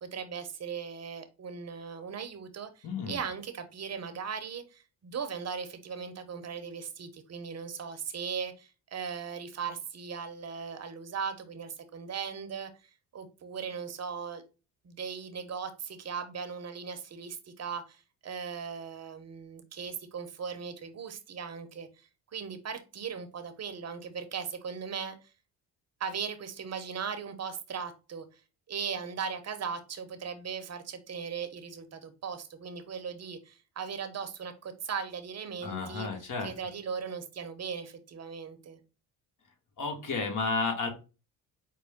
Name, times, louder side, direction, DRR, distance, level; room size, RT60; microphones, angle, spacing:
voice 1, 0.0-14.4 14.8-25.2 26.0-28.3 28.7-36.1 36.4-38.8, right 6 dB, 40° right, 9 dB, 0.8 m, -38 dB
voice 2, 2.8-3.2 35.6-36.5 39.8-40.9, left 4 dB, 50° left, 4 dB, 1.5 m, -32 dB
5.2 x 2.2 x 3.5 m, 0.31 s
supercardioid pair, 80°, 39 cm